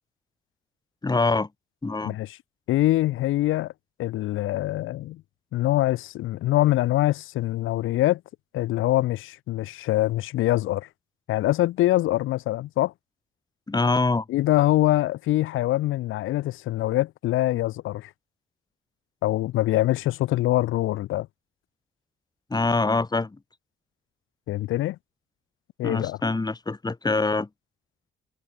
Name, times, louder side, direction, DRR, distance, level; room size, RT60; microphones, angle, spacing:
voice 1, 1.0-1.5 1.8-2.2 13.7-14.2 22.5-23.4 25.8-27.5, left 3 dB, 20° left, 2.6 m, -24 dB
voice 2, 2.0-2.4 2.7-3.7 4.0-5.2 5.5-8.2 8.5-10.9 11.3-12.9 14.3-18.1 19.2-21.3 24.5-25.0 25.8-26.2, left 15 dB, 90° left, 4.8 m, -24 dB
cardioid pair, 90°, 20 cm